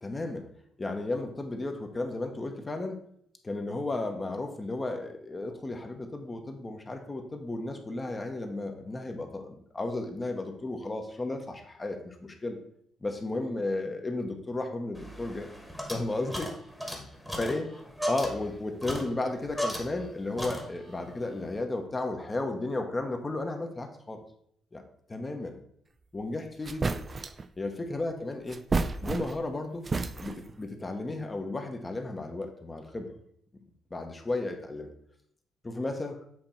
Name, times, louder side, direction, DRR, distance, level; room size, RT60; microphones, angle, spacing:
voice 1, 0.0-0.5 0.8-3.0 3.4-12.6 13.0-15.5 15.9-16.5 16.8-17.1 17.4-17.7 18.1-24.2 24.7-24.8 25.1-25.5 26.1-27.0 27.6-28.6 29.0-29.9 30.2-33.1 33.9-34.9 35.6-36.2, left 2 dB, 25° left, 4 dB, 1.0 m, -34 dB
sound 1, 14.9-20.1 20.4-21.0, equal, ahead, 1.3 m, -37 dB
sound 2, 26.2-26.3 26.6-27.5 28.5-29.5 29.8-30.6, right 3 dB, 30° right, 0.4 m, -31 dB
7.7 x 3.0 x 4.3 m, 0.67 s
cardioid pair, 90°, 0 cm